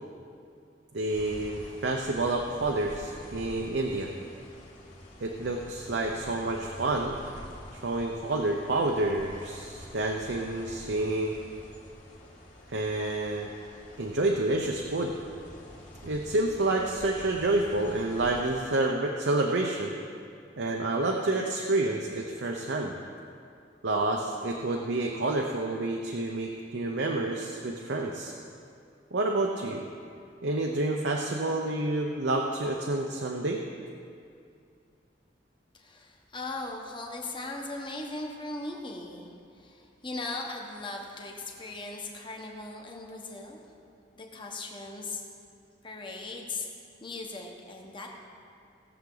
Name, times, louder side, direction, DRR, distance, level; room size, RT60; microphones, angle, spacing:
voice 1, 0.9-4.1 5.2-7.1 7.7-11.3 12.7-13.5 14.0-15.1 16.0-19.9 20.6-22.9 23.8-28.3 29.1-29.8 30.4-33.6, right 2 dB, 70° right, 1 dB, 0.7 m, -29 dB
sound 1, 1.1-18.4, left 1 dB, 45° left, 1.9 m, -47 dB
voice 2, 35.7-43.6 44.2-45.2 45.8-46.7 47.0-48.1, left 2 dB, 25° left, 1 dB, 1.2 m, -38 dB
17.5 x 7.1 x 3.9 m, 2.4 s
head